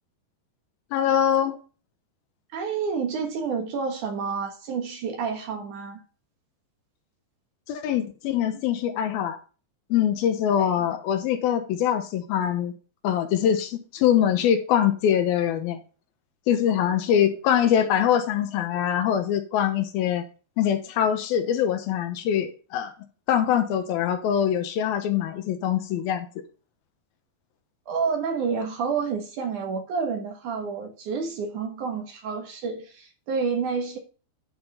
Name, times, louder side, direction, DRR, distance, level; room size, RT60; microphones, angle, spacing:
voice 1, 0.9-1.6 7.7-9.4 9.9-12.7 13.0-15.8 16.5-20.2 20.6-22.9 23.3-26.3, left 9 dB, 75° left, 2.8 m, -23 dB
voice 2, 2.5-6.0 10.6-10.7 27.9-34.0, right 5 dB, 60° right, 2.7 m, -29 dB
11.0 x 5.1 x 5.4 m
omnidirectional pair, 4.5 m